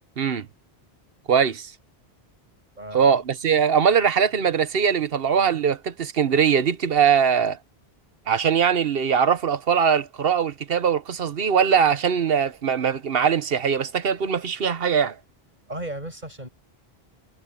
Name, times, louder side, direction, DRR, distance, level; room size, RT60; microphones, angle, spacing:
voice 1, 0.2-0.5 1.3-1.7 2.9-7.6 8.3-15.2, right 7 dB, 65° right, 1.2 m, -21 dB
voice 2, 2.8-3.1 15.7-16.5, right 1 dB, 45° right, 7.7 m, -35 dB
omnidirectional pair, 1.1 m